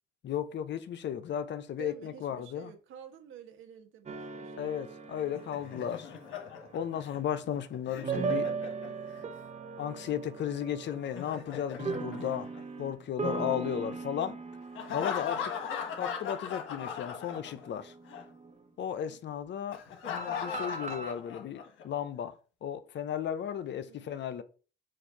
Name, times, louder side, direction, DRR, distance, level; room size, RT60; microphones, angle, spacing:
voice 1, 0.2-2.7 4.6-6.1 6.7-8.5 9.8-12.5 12.8-14.4 14.9-15.5 16.0-17.9 18.8-19.8 20.1-24.4, left 9 dB, 65° left, 0.8 m, -35 dB
voice 2, 1.8-4.8 19.0-19.4 23.8-24.3, right 8 dB, 80° right, 1.3 m, -51 dB
sound 1, 4.1-7.5 8.0-18.7 20.2-21.1, right 4 dB, 35° right, 1.0 m, -39 dB
Laughter, 5.2-9.2 10.9-13.0 14.7-17.8 18.1-18.2 19.7-21.8, left 7 dB, 80° left, 1.3 m, -39 dB
7.6 x 2.6 x 5.6 m
cardioid pair, 90°, 20 cm